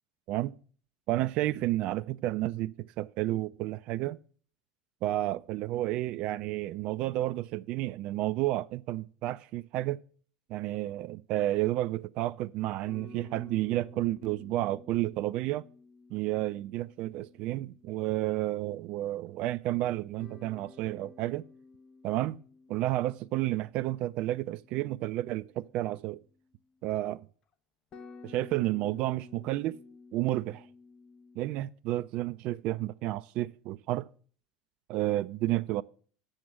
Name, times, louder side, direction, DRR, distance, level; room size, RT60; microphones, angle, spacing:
voice 1, 1.1-4.2 5.0-10.0 10.5-15.7 16.1-21.4 22.0-22.4 22.7-26.2 26.8-27.3 28.2-29.8 30.1-30.7 31.4-34.1 34.9-35.8, right 16 dB, 50° right, 0.3 m, -31 dB
sound 1, 12.8-18.1 20.2-26.8 27.5-27.6 27.9-31.6, left 4 dB, 40° left, 1.0 m, -54 dB
7.7 x 7.0 x 7.3 m
figure-of-eight pair, 75°, 2 cm